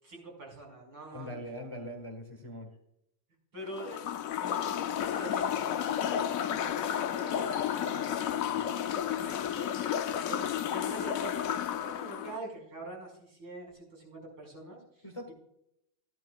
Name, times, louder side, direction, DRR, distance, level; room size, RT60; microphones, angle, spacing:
voice 1, 0.0-1.3 3.5-4.1 4.4-10.0 10.3-15.3, right 2 dB, 85° right, -3 dB, 6.0 m, -45 dB
voice 2, 1.1-2.7 15.0-15.3, equal, 20° left, 3 dB, 1.4 m, -41 dB
sound 1, 3.7-12.4, left 9 dB, 70° left, 0.8 m, -32 dB
15.0 x 11.5 x 2.4 m, 0.79 s
omnidirectional pair, 2.0 m